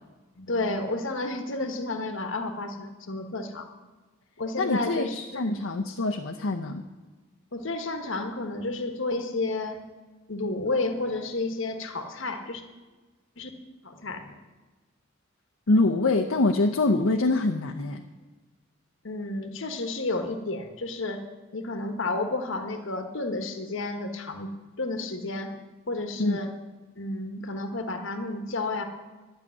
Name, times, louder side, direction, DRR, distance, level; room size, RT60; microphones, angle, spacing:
voice 1, 0.4-3.7 4.4-5.6 7.5-9.8 10.3-12.6 13.4-13.5 13.8-14.4 19.0-21.2 21.5-24.5 24.8-25.5 25.9-26.5 27.0-28.8, left 2 dB, 65° left, 6 dB, 1.3 m, -31 dB
voice 2, 4.6-6.8 15.7-18.0 26.2-26.4, left 2 dB, 85° left, 2 dB, 0.8 m, -25 dB
12.0 x 6.8 x 9.7 m, 1.3 s
head